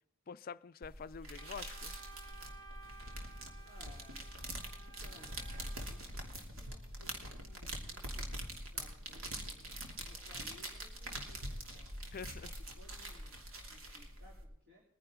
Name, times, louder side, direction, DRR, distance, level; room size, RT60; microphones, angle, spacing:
voice 1, 0.3-2.0 12.1-12.6, left 6 dB, 45° left, 0.4 m, -47 dB
sound 1, 0.8-14.4, right 1 dB, 75° right, 2.8 m, -44 dB
Wind instrument woodwind instrument, 1.4-6.0, right 4 dB, 20° left, 0.9 m, -56 dB
voice 2, 3.6-4.2 4.8-5.5 5.8-12.0 12.7-14.8, left 1 dB, 50° right, 3.7 m, -62 dB
21.5 x 10.5 x 3.7 m
head